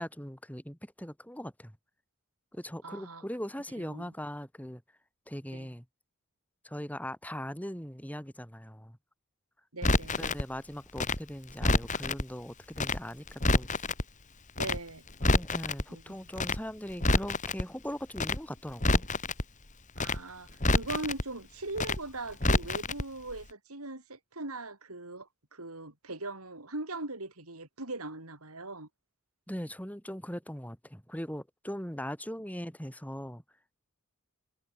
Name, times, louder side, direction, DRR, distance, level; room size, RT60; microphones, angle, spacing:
voice 1, 0.0-1.8 2.5-4.8 5.3-5.8 6.6-9.0 10.2-13.8 15.2-19.0 29.5-33.4, equal, 5° left, 7.6 m, -40 dB
voice 2, 2.8-3.2 3.8-4.1 5.5-5.7 9.7-10.3 14.6-15.0 15.9-16.2 20.0-28.9, right 2 dB, 80° right, 5.4 m, -40 dB
Crackle, 9.8-10.4 11.0-12.2 12.7-13.0 13.3-14.0 14.6-14.8 15.1-15.8 16.3-16.6 16.9-17.6 18.1-18.4 18.7-19.4 19.9-20.2 20.5-21.2 21.7-22.0 22.3-23.0 23.3-23.4, left 2 dB, 35° left, 3.4 m, -27 dB
head